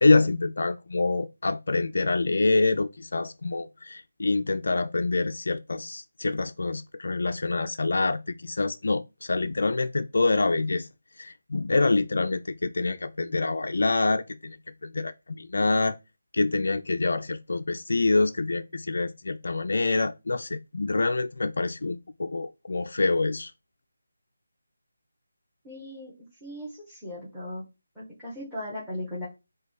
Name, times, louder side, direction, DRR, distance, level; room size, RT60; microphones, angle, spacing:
voice 1, 0.0-10.9 11.2-14.6 14.8-16.0 16.3-23.5, left 3 dB, 60° left, 0.3 m, -26 dB
voice 2, 25.6-26.1 26.4-27.6 27.9-29.3, left 1 dB, 5° right, 1.3 m, -37 dB
4.0 x 2.3 x 4.6 m
figure-of-eight pair, 155°, 0 cm